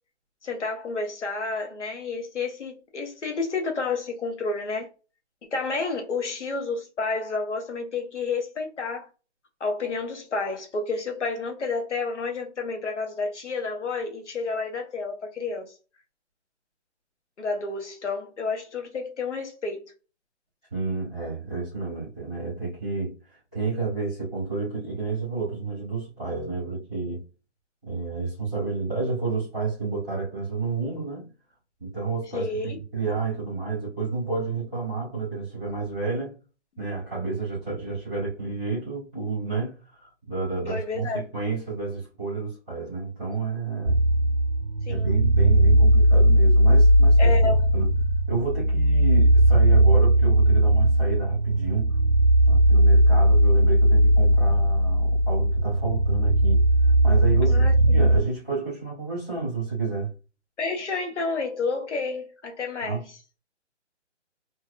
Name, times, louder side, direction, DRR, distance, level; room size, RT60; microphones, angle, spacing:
voice 1, 0.4-4.9 5.5-9.1 9.6-15.7 17.4-19.9 32.3-32.8 40.7-41.3 44.9-45.1 47.2-47.7 57.5-58.1 60.6-63.0, left 3 dB, 80° left, 1.1 m, -30 dB
voice 2, 20.7-27.2 27.8-31.3 31.8-36.3 36.8-44.0 44.9-47.9 48.3-51.9 52.4-60.1 62.8-63.0, right 4 dB, 5° left, 0.5 m, -30 dB
sound 1, 43.9-58.2, right 1 dB, 35° right, 0.6 m, -18 dB
2.6 x 2.3 x 2.3 m
hypercardioid pair, 160°, 35 cm